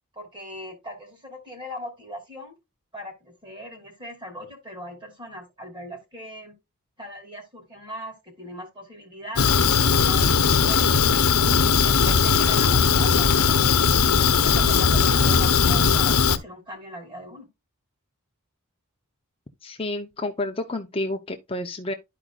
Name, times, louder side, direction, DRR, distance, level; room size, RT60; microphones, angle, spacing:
voice 1, 0.1-2.5 2.9-6.5 7.0-10.3 10.6-11.3 11.8-13.7 14.1-17.5, equal, 20° right, 3.0 m, -39 dB
Fire, 9.4-16.4, left 6 dB, 85° left, 0.9 m, -19 dB
voice 2, 19.6-21.9, left 2 dB, 25° left, 0.7 m, -30 dB
12.5 x 5.0 x 2.4 m
head